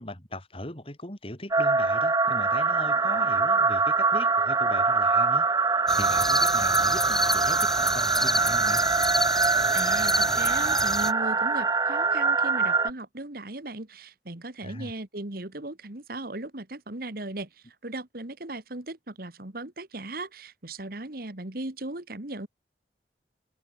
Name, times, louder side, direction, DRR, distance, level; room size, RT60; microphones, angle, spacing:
voice 1, 0.0-5.5 5.9-8.8 14.6-14.9, left 1 dB, 30° left, 6.0 m, -39 dB
sound 1, 1.5-12.9, right 4 dB, 20° right, 1.1 m, -24 dB
sound 2, 5.9-11.1, left 1 dB, 5° left, 2.2 m, -29 dB
voice 2, 9.7-17.5 17.8-22.5, right 2 dB, 55° right, 2.0 m, -37 dB
head